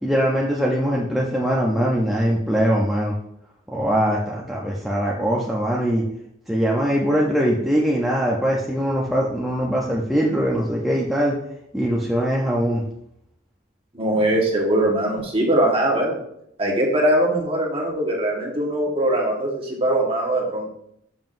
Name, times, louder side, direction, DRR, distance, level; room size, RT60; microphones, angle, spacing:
voice 1, 0.0-3.1 3.7-6.0 6.5-11.4 11.7-12.8, equal, ahead, -4 dB, 0.6 m, -22 dB
voice 2, 13.9-16.2 16.6-20.7, right 1 dB, 30° right, -2 dB, 1.3 m, -21 dB
7.2 x 5.5 x 2.6 m, 0.76 s
head